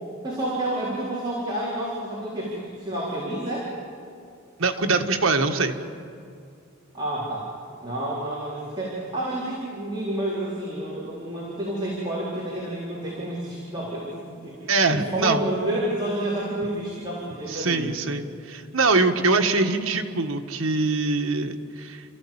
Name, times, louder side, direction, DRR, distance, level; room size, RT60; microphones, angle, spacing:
voice 1, 0.2-3.7 6.9-7.4 7.8-18.0, right 1 dB, 20° right, -7 dB, 4.3 m, -29 dB
voice 2, 4.6-5.7 14.7-15.4 17.5-22.0, right 3 dB, 80° right, 5 dB, 1.5 m, -23 dB
29.5 x 15.0 x 8.8 m, 2.4 s
head